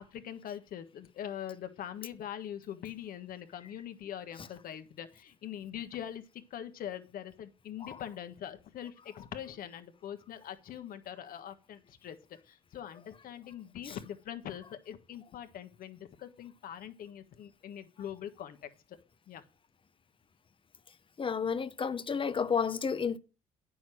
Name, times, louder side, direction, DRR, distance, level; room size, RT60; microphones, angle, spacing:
voice 1, 0.0-12.2 12.4-19.0 19.3-19.4, left 10 dB, 60° left, 1.4 m, -43 dB
voice 2, 21.2-23.2, left 6 dB, 30° left, 0.9 m, -31 dB
9.5 x 6.3 x 6.2 m
supercardioid pair, 70°, 17 cm